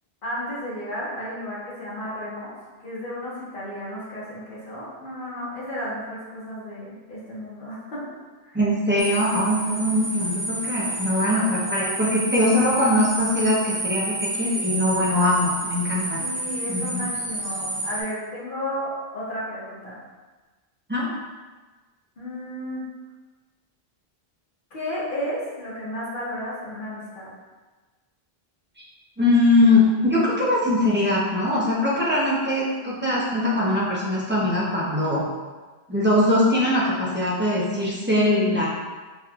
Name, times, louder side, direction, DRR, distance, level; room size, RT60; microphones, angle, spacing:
voice 1, 0.2-2.5 2.8-8.0 8.4-8.6 9.9-10.1 16.2-20.0 22.2-22.9 24.7-27.3, equal, 50° left, -9 dB, 1.4 m, -33 dB
voice 2, 8.5-16.2 16.7-17.0 20.9-21.1 29.2-35.2 35.9-38.7, left 1 dB, 10° right, -7 dB, 0.7 m, -21 dB
sound 1, 9.0-18.0, right 2 dB, 10° left, 1.3 m, -30 dB
4.2 x 3.3 x 2.4 m, 1.3 s
omnidirectional pair, 1.1 m